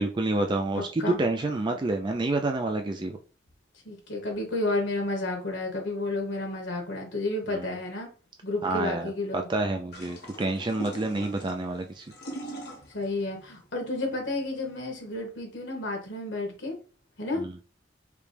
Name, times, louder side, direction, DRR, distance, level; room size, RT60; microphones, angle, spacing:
voice 1, 0.0-3.2 7.5-7.7 8.6-12.1 17.4-17.5, right 2 dB, 25° right, 4 dB, 0.4 m, -28 dB
voice 2, 3.8-8.1 8.4-9.5 12.9-16.8 17.2-17.4, left 2 dB, 85° left, 2 dB, 1.5 m, -31 dB
sound 1, 9.9-15.2, right 1 dB, 60° left, 1.1 m, -42 dB
5.0 x 2.2 x 3.2 m, 0.36 s
head